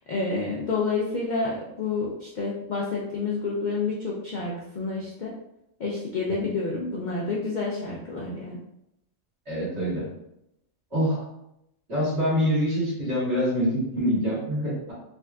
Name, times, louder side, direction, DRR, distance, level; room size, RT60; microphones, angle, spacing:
voice 1, 0.1-5.3 5.8-8.6, left 3 dB, 85° left, -4 dB, 0.4 m, -29 dB
voice 2, 9.5-10.1 10.9-11.2 11.9-14.9, equal, 55° right, -9 dB, 1.8 m, -25 dB
3.6 x 2.4 x 2.2 m, 0.81 s
omnidirectional pair, 1.4 m